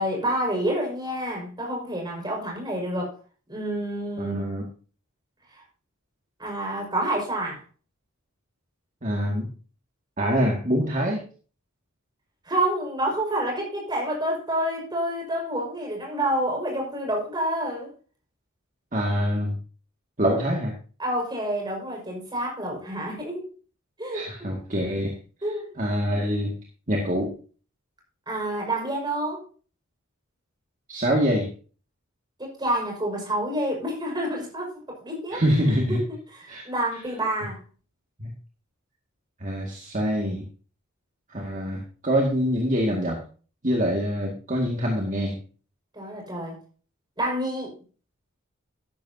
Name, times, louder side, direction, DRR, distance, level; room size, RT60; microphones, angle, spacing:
voice 1, 0.0-3.1 3.5-4.5 5.5-5.6 6.4-7.6 12.4-17.9 21.0-23.5 24.0-24.5 25.4-25.7 28.3-29.4 32.4-35.4 35.9-36.0 36.3-37.6 45.9-46.6 47.2-47.7, right 1 dB, 20° right, -1 dB, 5.2 m, -28 dB
voice 2, 4.2-4.6 9.0-9.5 10.2-11.2 18.9-19.6 20.2-20.7 24.1-25.2 25.8-26.5 26.9-27.3 30.9-31.5 35.3-36.0 36.5-36.6 38.2-38.3 39.4-40.4 41.3-43.2 43.6-45.4, equal, 35° right, 0 dB, 2.1 m, -25 dB
12.5 x 11.5 x 2.8 m, 0.38 s
head